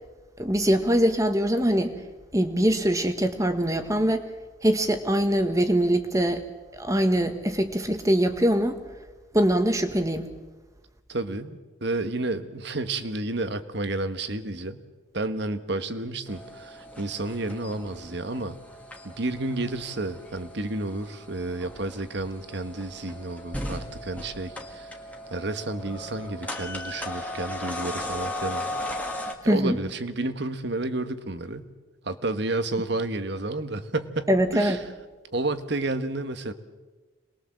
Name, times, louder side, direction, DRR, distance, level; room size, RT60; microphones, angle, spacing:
voice 1, 0.4-1.9 2.3-4.2 4.6-6.4 6.7-8.8 9.3-10.3 29.4-29.8 34.3-34.8, equal, 15° right, 7 dB, 1.6 m, -23 dB
voice 2, 11.1-14.8 15.1-18.6 19.0-25.0 25.3-28.8 29.4-31.7 32.0-34.8 35.3-36.5, right 2 dB, 55° right, 10 dB, 1.4 m, -31 dB
sound 1, 16.3-29.3, left 1 dB, 5° left, 1.9 m, -37 dB
27.5 x 21.0 x 7.6 m, 1.2 s
head